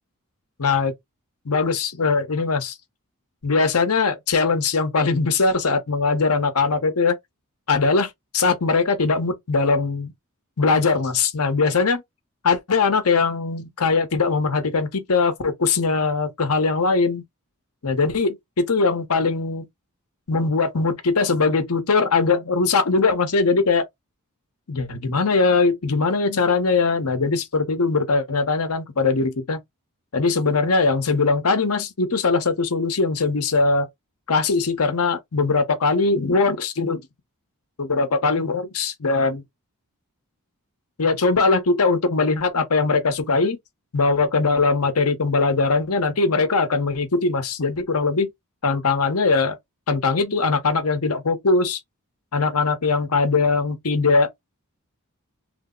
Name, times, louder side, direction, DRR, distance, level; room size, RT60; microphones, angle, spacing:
voice 1, 0.6-0.9 1.4-2.8 3.4-7.2 7.7-10.1 10.6-12.0 12.4-17.2 17.8-19.7 20.3-23.8 24.7-29.6 30.1-33.9 34.3-37.0 37.8-39.4 41.0-43.6 43.9-48.3 48.6-49.6 49.9-51.8 52.3-54.3, left 4 dB, 80° left, 0.9 m, -21 dB
3.2 x 2.1 x 3.7 m
head